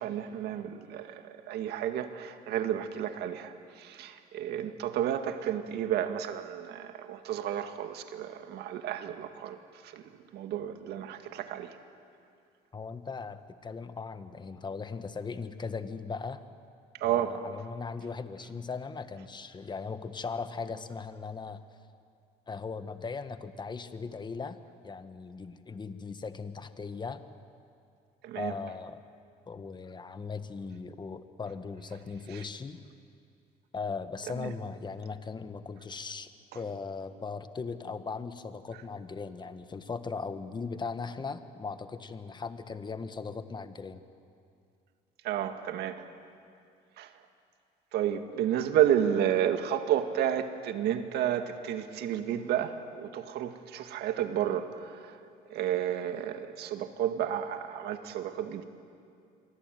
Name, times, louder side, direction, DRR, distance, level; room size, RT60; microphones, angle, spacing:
voice 1, 0.0-9.6 9.8-11.7 17.0-17.3 28.2-28.5 32.3-32.4 34.4-34.5 45.2-46.1 47.0-47.1 47.9-55.2 55.5-58.6, right 10 dB, 80° right, 7 dB, 2.0 m, -31 dB
voice 2, 12.7-16.4 17.0-21.6 22.5-24.6 24.8-27.2 28.3-29.0 29.5-32.8 33.7-36.3 36.5-44.0, left 4 dB, 25° left, 10 dB, 1.5 m, -38 dB
27.0 x 23.5 x 9.3 m, 2.4 s
cardioid pair, 110°, 17 cm